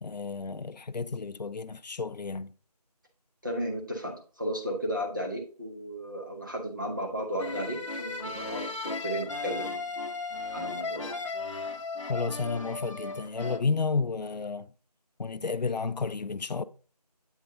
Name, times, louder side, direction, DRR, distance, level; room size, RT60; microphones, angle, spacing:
voice 1, 0.0-2.5 12.1-14.7 15.2-16.6, left 4 dB, 85° left, 0.5 m, -31 dB
voice 2, 3.4-9.8 10.5-11.1, equal, 30° right, 1.1 m, -34 dB
sound 1, 7.4-13.6, left 3 dB, 50° left, 0.8 m, -35 dB
8.1 x 3.7 x 3.7 m
figure-of-eight pair, 175°, 21 cm